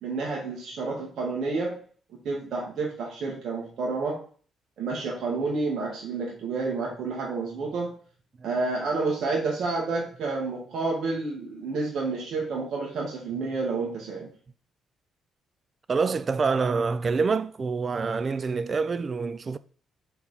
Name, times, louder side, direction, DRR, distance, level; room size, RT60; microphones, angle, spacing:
voice 1, 0.0-1.8 2.3-4.2 4.8-7.9 8.4-14.3, right 3 dB, 70° right, 1.7 m, -29 dB
voice 2, 15.9-19.6, right 4 dB, 40° right, 0.4 m, -26 dB
4.4 x 4.2 x 5.7 m
cardioid pair, 90°, 0 cm